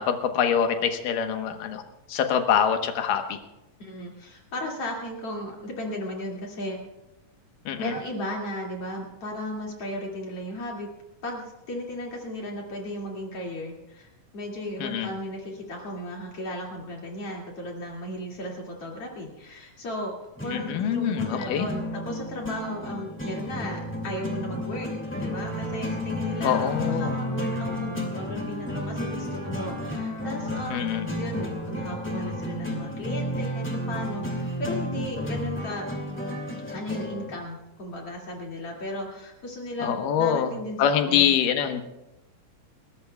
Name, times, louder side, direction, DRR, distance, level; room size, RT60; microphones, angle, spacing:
voice 1, 0.0-1.8 2.1-3.4 7.7-7.9 14.8-15.1 20.5-21.7 26.4-27.1 30.7-31.1 39.8-40.5 40.8-41.8, left 8 dB, 80° left, 6 dB, 2.7 m, -24 dB
voice 2, 3.8-6.8 7.8-10.9 11.2-24.9 25.2-35.9 36.7-41.3, left 1 dB, 45° left, -1 dB, 3.2 m, -35 dB
sound 1, 20.4-37.3, left 1 dB, 5° left, 1.5 m, -32 dB
Wind instrument woodwind instrument, 25.2-31.9, equal, 15° right, 3.5 m, -40 dB
30.0 x 14.5 x 2.3 m, 0.99 s
omnidirectional pair, 3.9 m